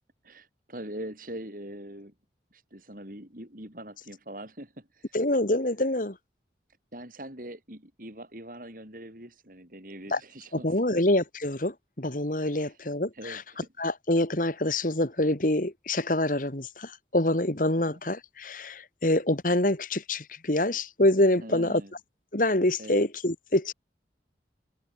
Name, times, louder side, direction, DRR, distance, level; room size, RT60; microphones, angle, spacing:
voice 1, 0.2-2.1 2.5-5.2 6.9-11.0 12.5-12.8 13.1-13.9 17.8-18.0 21.4-21.9 22.8-23.0, right 1 dB, 50° right, 7.3 m, -43 dB
voice 2, 5.1-6.2 10.1-10.2 10.5-13.4 13.8-21.8 22.3-23.7, left 1 dB, 50° left, 2.4 m, -26 dB
head